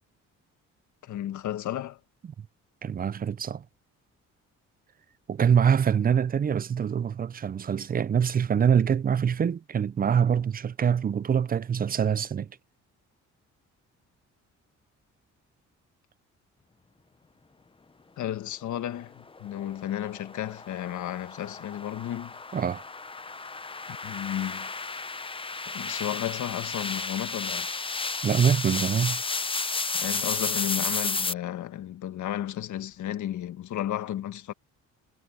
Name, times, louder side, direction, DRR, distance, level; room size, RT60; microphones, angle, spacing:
voice 1, 1.0-2.0 18.2-22.3 23.9-24.7 25.7-27.9 29.9-34.5, left 12 dB, 75° left, 1.6 m, -33 dB
voice 2, 2.8-3.6 5.3-12.5 22.5-22.8 28.2-29.2, right 7 dB, 30° right, 0.5 m, -24 dB
sound 1, 19.3-31.3, left 4 dB, 20° left, 0.8 m, -33 dB
cardioid pair, 90°, 30 cm